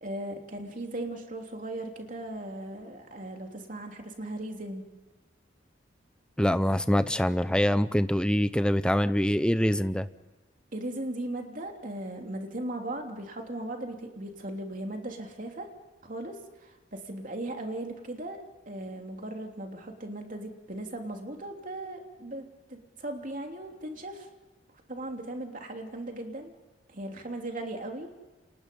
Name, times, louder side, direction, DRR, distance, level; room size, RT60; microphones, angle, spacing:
voice 1, 0.0-4.8 10.7-15.7 16.0-24.3 24.9-26.5 26.9-28.1, right 1 dB, 45° right, 3 dB, 3.2 m, -38 dB
voice 2, 6.4-10.1, equal, 5° left, 12 dB, 0.8 m, -24 dB
29.5 x 26.5 x 5.5 m, 1.2 s
head